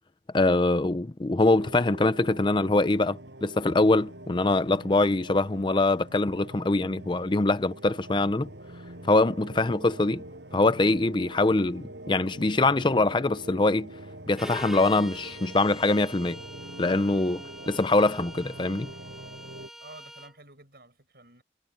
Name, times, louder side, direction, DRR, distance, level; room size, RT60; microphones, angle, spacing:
voice 1, 0.3-8.5 9.0-10.2 10.5-13.9 14.3-16.4 16.8-18.9, left 2 dB, 25° left, 0.5 m, -23 dB
sound 1, 1.4-19.7, right 1 dB, 85° right, 6.8 m, -44 dB
Bowed string instrument, 14.3-20.3, equal, ahead, 3.1 m, -44 dB
voice 2, 19.8-21.4, right 2 dB, 60° right, 7.8 m, -50 dB
head